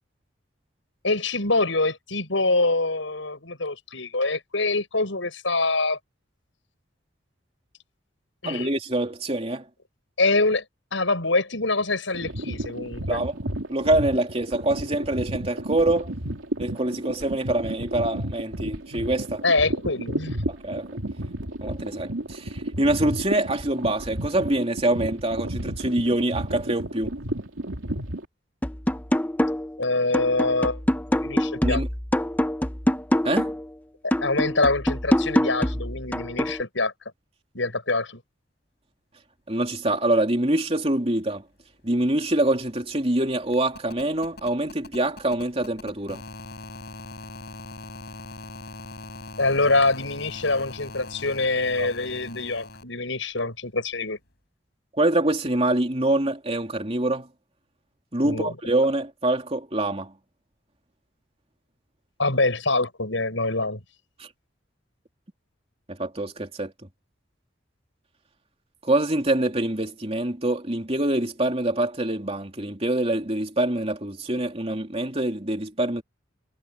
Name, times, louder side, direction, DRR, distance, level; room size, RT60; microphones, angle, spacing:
voice 1, 1.0-6.0 8.4-8.7 10.2-10.6 10.9-13.2 19.4-20.4 29.8-30.8 31.2-31.8 34.0-36.9 37.5-38.2 49.4-54.2 58.2-58.5 62.2-63.8, left 3 dB, 75° left, 7.0 m, -25 dB
voice 2, 8.4-9.7 13.1-13.4 13.7-16.1 16.6-19.4 20.5-20.9 21.6-27.1 31.6-31.9 33.2-33.5 39.5-41.4 41.8-46.2 51.8-51.9 54.9-57.3 58.1-60.1 64.2-64.3 65.9-66.7 68.8-76.0, right 1 dB, 30° right, 3.2 m, -25 dB
sound 1, 12.1-28.2, right 1 dB, 85° right, 2.9 m, -32 dB
sound 2, 28.6-29.8 30.1-33.7 34.1-36.6, equal, 10° left, 0.7 m, -25 dB
sound 3, 41.6-41.7 41.9-52.8 54.3-54.4, left 2 dB, 55° left, 7.8 m, -42 dB
head